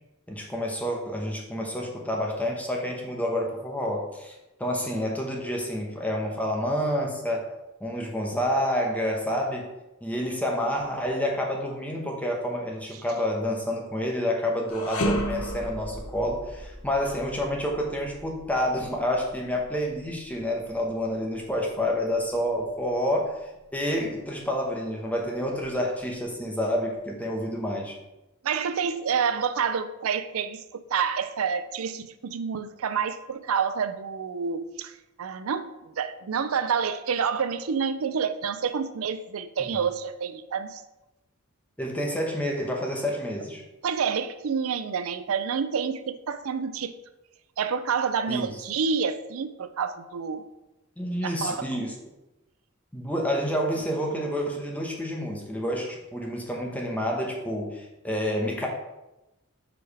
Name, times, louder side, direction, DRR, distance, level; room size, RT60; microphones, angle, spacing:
voice 1, 0.3-7.5 7.8-9.7 10.0-23.3 23.7-28.0 39.6-39.8 41.8-43.6 48.3-48.6 51.0-51.9 52.9-58.7, equal, 5° left, 0 dB, 1.0 m, -29 dB
sound 1, 14.7-23.9 24.3-24.5 25.4-26.3, equal, 90° left, 0.9 m, -36 dB
voice 2, 28.4-30.6 30.9-34.9 35.2-40.8 43.8-46.9 47.6-50.4 51.2-51.7, right 6 dB, 75° right, 11 dB, 0.5 m, -28 dB
5.0 x 4.7 x 4.8 m, 0.98 s
head